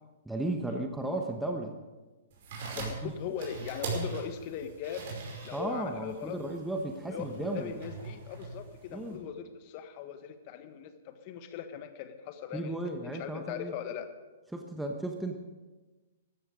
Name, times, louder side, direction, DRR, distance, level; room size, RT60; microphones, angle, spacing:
voice 1, 0.2-1.7 2.7-3.1 5.5-7.8 8.9-9.2 12.5-13.7 14.5-15.4, right 1 dB, 5° right, 3 dB, 1.2 m, -35 dB
sound 1, 2.3-9.2, right 3 dB, 50° right, 5.3 m, -41 dB
voice 2, 2.7-5.1 5.4-6.4 7.1-12.8 13.0-14.1, left 8 dB, 40° left, 9 dB, 1.5 m, -40 dB
15.0 x 14.0 x 5.1 m, 1.2 s
figure-of-eight pair, 115°, 0 cm